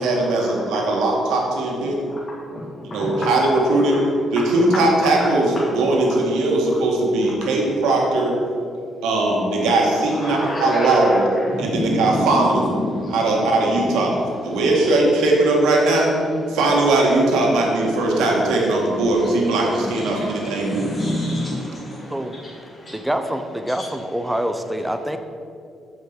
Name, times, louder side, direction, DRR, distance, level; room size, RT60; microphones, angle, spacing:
voice 1, 0.0-2.0 2.9-4.0 4.3-8.4 9.0-11.2 11.6-12.7 13.1-14.2 14.4-16.1 16.5-21.0, right 2 dB, 90° right, -2 dB, 2.0 m, -19 dB
voice 2, 2.9-3.3 5.0-5.1 10.1-13.5 19.2-19.3 19.7-23.1 23.8-23.9, left 1 dB, 30° left, -5 dB, 1.8 m, -29 dB
voice 3, 22.9-25.2, equal, 5° right, 8 dB, 0.7 m, -25 dB
7.1 x 6.3 x 7.1 m, 2.5 s
cardioid pair, 90°, 0 cm